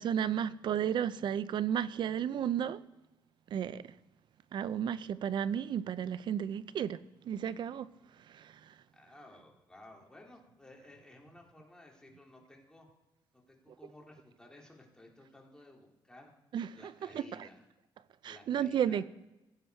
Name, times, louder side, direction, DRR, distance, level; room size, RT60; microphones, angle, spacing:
voice 1, 0.0-2.8 3.5-3.8 4.5-7.0 7.2-7.9 8.3-8.7 16.5-17.2 18.2-19.0, right 9 dB, 60° right, 0.5 m, -33 dB
voice 2, 8.9-12.9 13.3-16.3 16.7-17.6 18.2-19.0, left 1 dB, 10° left, 2.6 m, -56 dB
15.5 x 9.2 x 4.6 m
cardioid pair, 100°, 9 cm